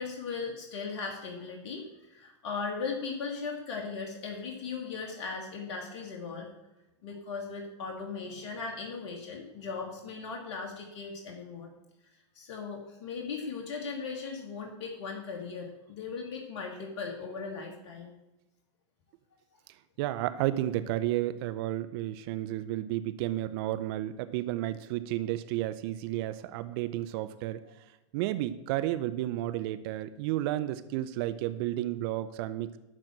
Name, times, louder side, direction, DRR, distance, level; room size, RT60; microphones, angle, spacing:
voice 1, 0.0-6.5 7.0-11.7 12.3-18.1, left 4 dB, 55° left, 1 dB, 2.1 m, -38 dB
voice 2, 20.0-27.6 28.1-32.8, right 14 dB, 50° right, 12 dB, 0.7 m, -32 dB
12.0 x 4.4 x 7.6 m, 0.98 s
hypercardioid pair, 100°, 16 cm